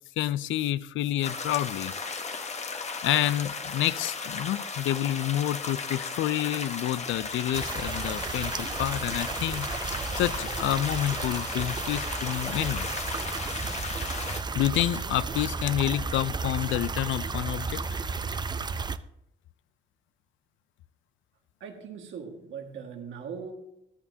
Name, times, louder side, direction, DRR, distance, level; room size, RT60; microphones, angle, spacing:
voice 1, 0.2-1.9 3.0-9.7 10.1-12.9 14.5-17.8, left 13 dB, 80° left, 0.4 m, -28 dB
sound 1, 1.2-14.4, left 4 dB, 35° left, 1.0 m, -36 dB
sound 2, 7.5-19.0, right 4 dB, 20° right, 0.5 m, -33 dB
voice 2, 21.6-23.5, right 6 dB, 75° right, 1.7 m, -40 dB
14.0 x 11.0 x 2.7 m
cardioid pair, 90°, 20 cm